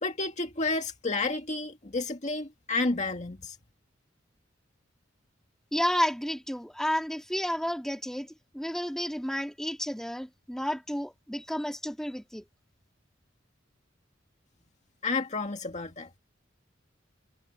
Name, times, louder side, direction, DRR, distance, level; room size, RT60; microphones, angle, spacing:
voice 1, 0.0-3.6 15.0-16.1, left 3 dB, 40° left, 2.0 m, -31 dB
voice 2, 5.7-12.4, equal, 5° left, 3.6 m, -31 dB
head